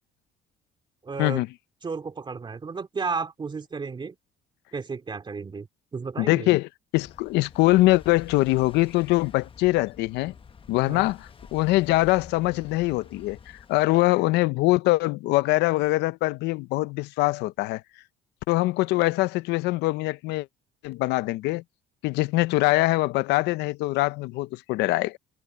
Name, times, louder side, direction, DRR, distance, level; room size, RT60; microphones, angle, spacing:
voice 1, 1.0-1.4 1.8-4.2 4.7-5.7 5.9-6.5 10.9-11.1, right 4 dB, 25° right, 2.4 m, -33 dB
voice 2, 6.2-6.7 6.9-10.3 10.7-13.4 13.7-17.8 18.5-20.5 20.8-21.6 22.0-25.2, left 20 dB, 90° left, 0.6 m, -23 dB
sound 1, 7.0-14.4, left 6 dB, 30° left, 1.2 m, -48 dB
cardioid pair, 110°, 17 cm